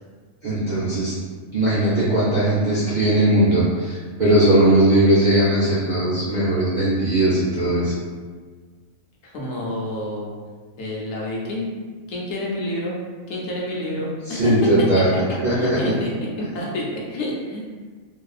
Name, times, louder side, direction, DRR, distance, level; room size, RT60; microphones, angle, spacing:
voice 1, 0.4-1.2 1.5-7.9 14.3-15.1 15.4-15.9, right 1 dB, 90° right, -10 dB, 0.4 m, -19 dB
voice 2, 9.2-10.3 10.8-11.7 12.1-14.5 15.5-17.7, left 1 dB, 65° left, -3 dB, 1.0 m, -29 dB
2.7 x 2.3 x 2.3 m, 1.5 s
omnidirectional pair, 1.5 m